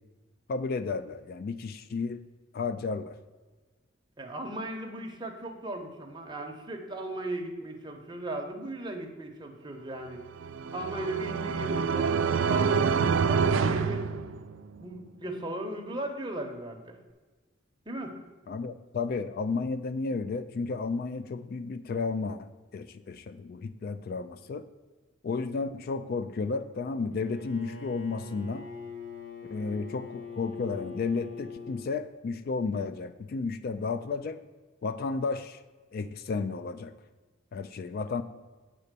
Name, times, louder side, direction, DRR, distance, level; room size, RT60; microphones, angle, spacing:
voice 1, 0.5-2.2 2.5-3.1 18.5-24.7 25.2-28.7 29.5-34.4 34.8-35.6 35.9-36.9 37.5-38.2, left 4 dB, 50° left, 12 dB, 0.3 m, -32 dB
voice 2, 4.2-10.2 10.7-14.0 14.8-17.0 17.9-18.2, right 1 dB, 25° right, 3 dB, 0.9 m, -37 dB
sound 1, 10.3-14.8, right 5 dB, 75° right, 0.4 m, -27 dB
Bowed string instrument, 27.1-31.9, left 4 dB, 70° left, 1.5 m, -42 dB
8.2 x 4.1 x 6.6 m, 1.3 s
head